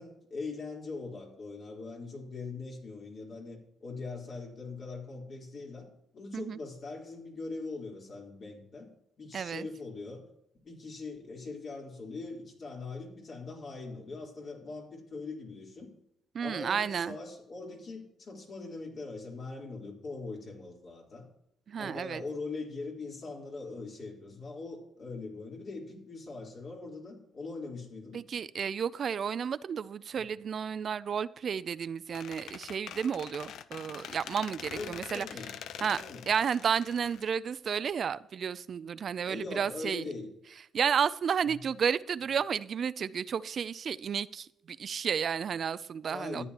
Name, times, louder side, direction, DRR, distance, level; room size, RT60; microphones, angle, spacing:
voice 1, 0.0-5.9 6.1-8.9 9.2-10.2 10.6-15.9 16.4-21.3 21.8-28.2 34.7-36.3 39.2-40.3 41.4-41.5 46.1-46.4, left 3 dB, 50° left, 3.8 m, -41 dB
voice 2, 9.3-9.7 16.3-17.2 21.7-22.2 28.1-35.3 35.8-40.0 40.7-46.4, right 7 dB, 55° right, 0.3 m, -32 dB
Squeak, 32.1-37.9, left 9 dB, 75° left, 0.5 m, -45 dB
13.5 x 9.8 x 2.9 m
cardioid pair, 90°, 0 cm